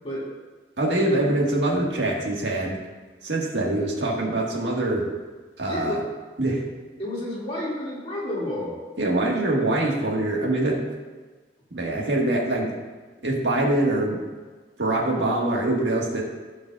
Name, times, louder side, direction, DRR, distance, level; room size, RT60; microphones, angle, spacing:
voice 1, 0.8-2.8 3.2-5.1 5.6-6.0 6.4-6.6 9.0-10.8 11.7-12.7 13.2-14.2 14.8-16.2, right 1 dB, 85° right, -2 dB, 1.7 m, -24 dB
voice 2, 5.6-6.0 7.0-8.8, left 1 dB, 35° left, -7 dB, 2.4 m, -30 dB
15.5 x 5.2 x 2.4 m, 1.4 s
head